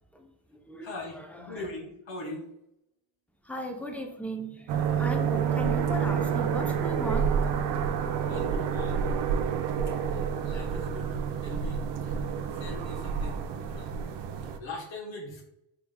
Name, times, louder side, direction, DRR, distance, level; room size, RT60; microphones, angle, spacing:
voice 1, 0.8-2.4 8.3-9.2 10.1-11.1 11.4-12.1 12.6-14.0 14.4-15.4, left 2 dB, 65° left, -3 dB, 1.2 m, -41 dB
voice 2, 3.5-4.7 5.0-7.7, equal, 5° left, 3 dB, 0.6 m, -36 dB
sound 1, 4.7-14.6, right 7 dB, 60° right, 0.5 m, -29 dB
3.6 x 3.4 x 2.3 m, 0.83 s
supercardioid pair, 45°, 50 cm